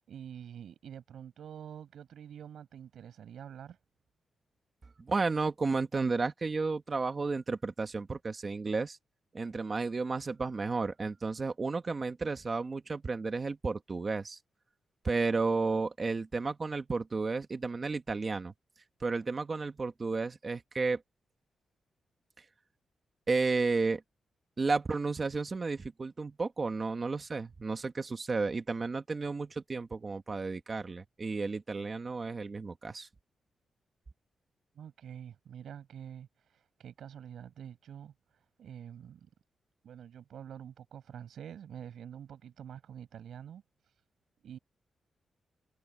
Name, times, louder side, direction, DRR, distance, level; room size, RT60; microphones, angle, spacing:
voice 1, 0.0-3.8 34.7-39.3 39.8-44.0 44.4-44.6, right 9 dB, 75° right, 6.6 m, -47 dB
voice 2, 5.0-9.0 9.3-14.4 15.0-18.5 19.0-21.0 23.3-24.0 24.6-33.1, right 4 dB, 30° right, 1.6 m, -32 dB
wide cardioid pair, 160°, 0 cm